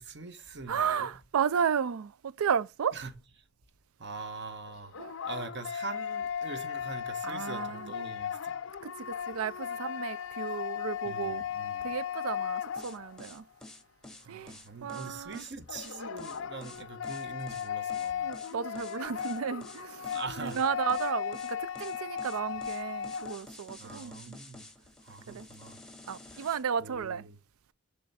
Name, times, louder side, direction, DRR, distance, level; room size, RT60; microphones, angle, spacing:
voice 1, 0.0-1.1 2.9-3.1 4.0-5.0 5.2-8.6 11.0-11.9 14.1-18.3 20.1-20.6 23.8-24.7 25.0-25.8 26.3-26.5 26.8-27.4, right 3 dB, 55° right, 1.1 m, -43 dB
voice 2, 0.7-3.0 5.0-5.2 7.2-7.9 8.8-11.4 11.8-13.5 14.3-14.5 14.8-15.4 18.2-24.4 25.3-25.5 26.1-27.3, right 7 dB, 90° right, 0.4 m, -33 dB
sound 1, 4.7-13.4 15.7-23.4, left 8 dB, 65° left, 0.5 m, -36 dB
sound 2, 12.8-26.6, left 2 dB, 5° left, 0.8 m, -50 dB
10.0 x 3.5 x 4.2 m
head